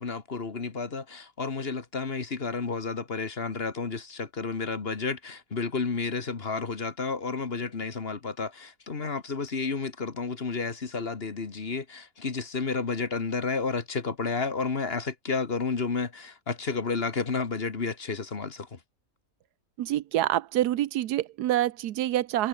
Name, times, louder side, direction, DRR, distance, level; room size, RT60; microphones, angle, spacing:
voice 1, 0.0-18.8, left 4 dB, 40° left, 1.7 m, -31 dB
voice 2, 19.8-22.5, right 13 dB, 90° right, 1.3 m, -26 dB
omnidirectional pair, 1.6 m